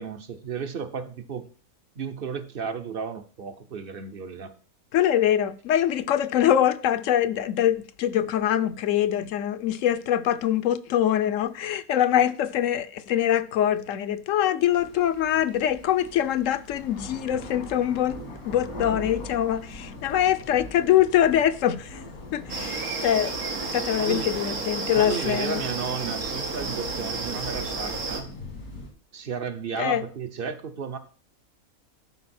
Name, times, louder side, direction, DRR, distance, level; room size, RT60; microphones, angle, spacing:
voice 1, 0.0-1.5 2.0-4.5 24.0-24.3 24.9-28.3 29.1-31.0, right 6 dB, 45° right, 0.8 m, -33 dB
voice 2, 4.9-18.2 18.4-22.0 22.3-23.3 23.7-25.6 29.8-30.0, left 10 dB, 70° left, 1.0 m, -23 dB
sound 1, 14.7-28.9, left 2 dB, 90° left, 2.7 m, -42 dB
sound 2, 22.5-28.2, right 3 dB, 85° right, 2.1 m, -31 dB
12.5 x 5.0 x 4.3 m
omnidirectional pair, 1.5 m